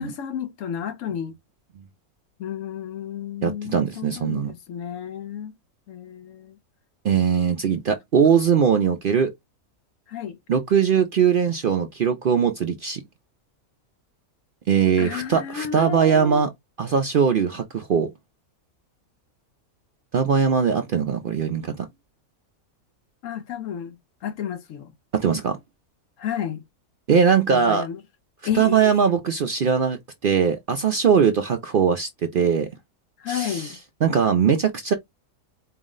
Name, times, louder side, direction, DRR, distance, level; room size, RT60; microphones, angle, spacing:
voice 1, 0.0-1.3 2.4-5.5 5.9-6.6 8.3-8.4 10.1-10.4 15.0-16.4 23.2-24.9 26.2-26.6 27.5-28.0 28.4-28.9 33.2-33.8, left 8 dB, 65° left, 1.0 m, -31 dB
voice 2, 3.4-4.5 7.0-9.3 10.5-13.0 14.7-16.5 16.8-18.1 20.1-21.9 25.1-25.6 27.1-27.9 28.5-32.7 33.3-33.7 34.0-34.9, right 7 dB, 75° right, 0.5 m, -21 dB
4.6 x 2.1 x 3.6 m
omnidirectional pair, 1.5 m